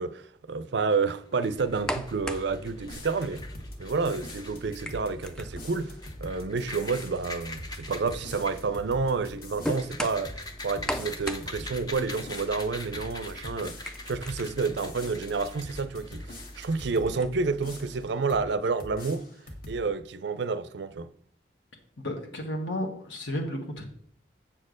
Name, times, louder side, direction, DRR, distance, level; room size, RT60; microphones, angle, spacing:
voice 1, 0.0-3.4 3.8-6.0 6.2-19.3 19.7-21.1, right 4 dB, 65° right, 0.5 m, -29 dB
sound 1, 0.9-17.2, left 2 dB, 20° left, 0.7 m, -45 dB
sound 2, 1.6-18.1, equal, 5° left, 0.3 m, -41 dB
sound 3, 2.9-17.2 17.6-18.5 18.8-19.8, left 1 dB, 50° left, 1.4 m, -45 dB
voice 2, 22.0-23.9, left 1 dB, 75° left, 1.2 m, -33 dB
7.6 x 4.4 x 6.3 m
head